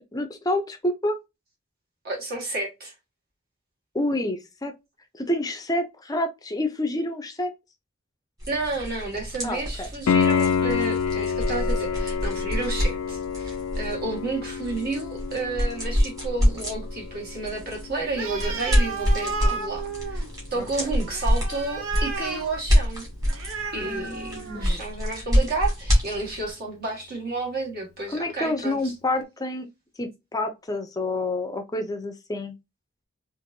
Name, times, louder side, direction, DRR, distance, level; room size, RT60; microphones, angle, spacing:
voice 1, 0.1-1.2 3.9-4.7 5.1-7.5 9.4-9.9 20.5-20.9 23.8-24.8 28.1-29.7 30.0-32.5, left 1 dB, 20° left, 0.5 m, -28 dB
voice 2, 2.0-2.9 8.5-20.2 20.5-23.1 23.7-28.9, right 3 dB, 45° right, 1.5 m, -31 dB
sound 1, 8.4-26.5, equal, 15° right, 2.0 m, -27 dB
Piano, 10.1-20.7 24.0-24.1, left 6 dB, 90° left, 0.4 m, -29 dB
Animal, 18.1-24.9, right 4 dB, 65° right, 0.6 m, -34 dB
4.3 x 2.6 x 2.6 m
head